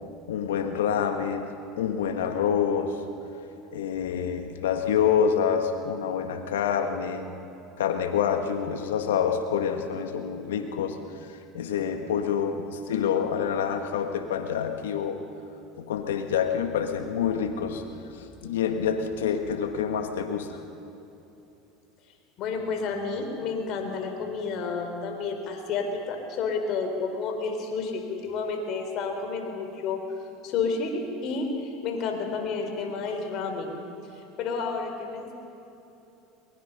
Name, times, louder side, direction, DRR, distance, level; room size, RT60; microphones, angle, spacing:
voice 1, 0.3-3.0 3.7-7.3 7.8-11.0 11.5-15.2 15.8-17.8 18.1-20.6, left 7 dB, 85° left, 6 dB, 1.8 m, -27 dB
voice 2, 22.4-30.0 30.4-33.8 34.4-35.3, left 4 dB, 55° left, 4 dB, 4.0 m, -30 dB
23.0 x 21.0 x 5.5 m, 3.0 s
hypercardioid pair, 90°, 0 cm